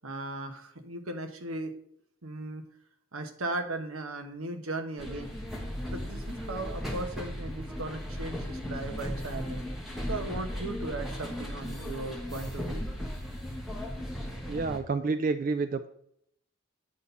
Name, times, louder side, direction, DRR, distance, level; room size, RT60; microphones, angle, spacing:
voice 1, 0.0-1.7 2.2-2.6 3.1-5.3 5.9-9.6 10.1-12.8, right 2 dB, 85° right, 6 dB, 1.1 m, -37 dB
sound 1, 5.0-14.8, equal, ahead, 1.3 m, -36 dB
voice 2, 14.5-15.9, right 4 dB, 40° right, 10 dB, 0.3 m, -29 dB
8.7 x 4.1 x 5.6 m, 0.71 s
head